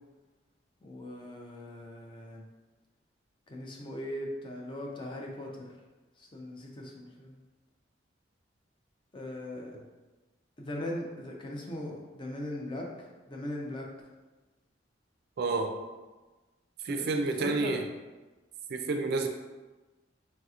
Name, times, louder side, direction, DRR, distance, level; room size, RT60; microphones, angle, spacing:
voice 1, 0.8-2.5 3.5-5.7 6.2-7.4 9.1-9.7 10.6-13.9 16.9-17.1 17.4-17.8, left 1 dB, 25° left, 0 dB, 0.4 m, -39 dB
voice 2, 15.4-15.7 16.8-17.8 18.7-19.3, right 3 dB, 60° right, 5 dB, 0.3 m, -29 dB
3.2 x 2.8 x 2.4 m, 1.2 s
head